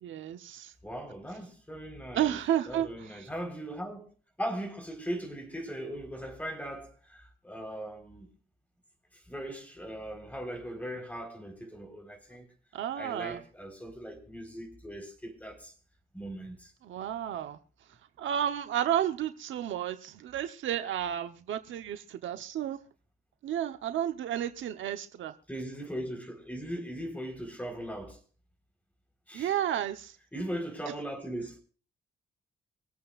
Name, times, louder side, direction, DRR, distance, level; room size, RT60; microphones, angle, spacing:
voice 1, 0.0-0.7 2.1-3.3 12.7-13.4 16.8-17.6 18.2-22.8 23.4-25.3 29.3-30.2, right 10 dB, 75° right, 1.0 m, -32 dB
voice 2, 0.8-2.4 2.7-4.1 4.4-8.3 9.1-12.5 12.9-15.7 16.1-16.7 25.5-28.2 29.3-29.5 30.3-31.6, equal, 5° left, 4.2 m, -39 dB
25.5 x 8.5 x 2.5 m
cardioid pair, 90°, 20 cm